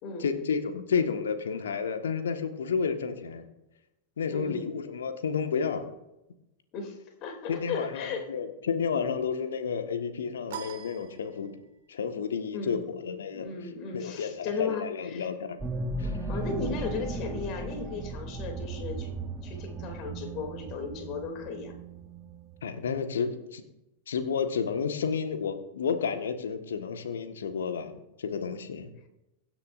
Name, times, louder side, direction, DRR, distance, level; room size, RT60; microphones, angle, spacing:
voice 1, 0.2-3.4 4.2-5.9 7.5-11.5 11.9-13.5 13.9-15.6 16.0-16.2 22.6-23.6 24.1-28.9, left 6 dB, 65° left, 6 dB, 1.5 m, -31 dB
voice 2, 4.3-4.7 6.7-8.2 12.5-12.9 13.3-15.3 16.0-19.1 19.4-21.7, left 5 dB, 40° left, 4 dB, 2.8 m, -36 dB
sound 1, 10.5-11.9, right 7 dB, 55° right, 1.5 m, -43 dB
sound 2, 15.6-22.6, right 3 dB, 20° right, 1.2 m, -36 dB
23.5 x 9.9 x 2.6 m, 0.93 s
figure-of-eight pair, 90°, 0 cm